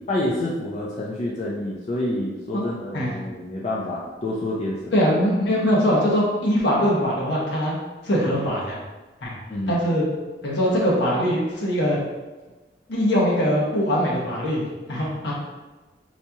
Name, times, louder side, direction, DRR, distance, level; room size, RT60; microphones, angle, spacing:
voice 1, 0.1-4.9 9.5-9.8, left 1 dB, 35° left, -4 dB, 0.4 m, -28 dB
voice 2, 4.9-7.8 8.0-8.8 9.2-9.4 9.7-10.0 10.4-12.0 12.9-15.3, equal, 65° left, -4 dB, 0.9 m, -22 dB
4.1 x 2.3 x 2.8 m, 1.2 s
head